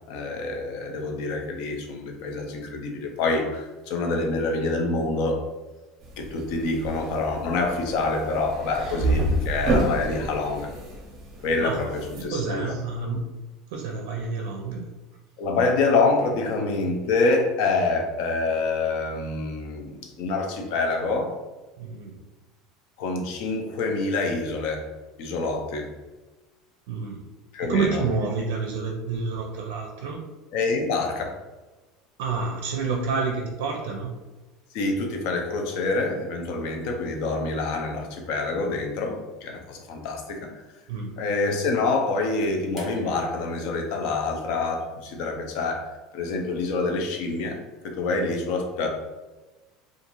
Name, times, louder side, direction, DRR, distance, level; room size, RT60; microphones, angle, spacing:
voice 1, 0.1-5.4 6.2-10.7 11.4-12.7 15.4-21.3 23.0-24.9 25.2-25.9 27.5-28.0 30.5-31.4 34.7-40.5 41.2-47.6 47.8-48.9, left 3 dB, 60° left, 3 dB, 0.5 m, -26 dB
sound 1, 6.0-12.2, right 1 dB, 30° right, 0.6 m, -29 dB
voice 2, 11.6-13.2 13.7-14.8 21.8-22.2 26.9-27.2 27.6-30.2 32.2-34.1 40.9-41.2, right 4 dB, 80° right, 0 dB, 0.4 m, -29 dB
sound 2, 42.8-45.9 47.1-47.2, equal, 20° left, 0.8 m, -47 dB
2.5 x 2.4 x 2.9 m, 1.2 s
cardioid pair, 165°, 0 cm